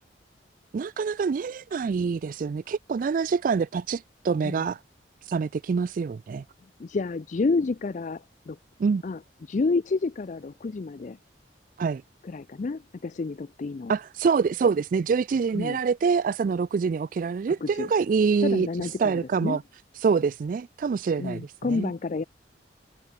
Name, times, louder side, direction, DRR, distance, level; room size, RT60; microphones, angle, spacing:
voice 1, 0.7-4.8 5.2-6.4 8.8-9.0 11.8-12.0 13.9-19.6 20.0-21.4 21.7-21.9, right 5 dB, 50° right, 0.3 m, -25 dB
voice 2, 6.8-8.6 9.0-11.2 12.2-14.0 15.5-15.8 17.6-17.9 18.4-19.6 21.2-22.2, left 3 dB, 45° left, 0.4 m, -29 dB
head